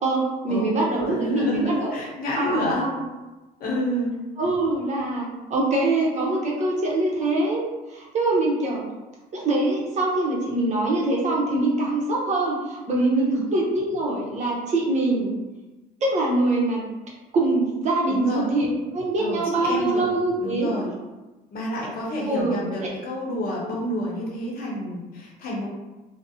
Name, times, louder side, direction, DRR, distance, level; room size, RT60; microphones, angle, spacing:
voice 1, 0.0-1.9 2.3-2.9 4.4-7.6 7.9-8.8 9.3-15.3 16.1-16.9 17.3-18.7 18.9-20.7 22.3-22.6, right 2 dB, 45° right, -3 dB, 0.7 m, -23 dB
voice 2, 1.0-2.9 3.6-4.1 13.2-13.4 18.1-18.5 19.2-20.0 20.4-20.9 21.5-25.7, equal, 60° left, -3 dB, 0.8 m, -29 dB
2.5 x 2.0 x 2.6 m, 1.1 s
cardioid pair, 110°, 17 cm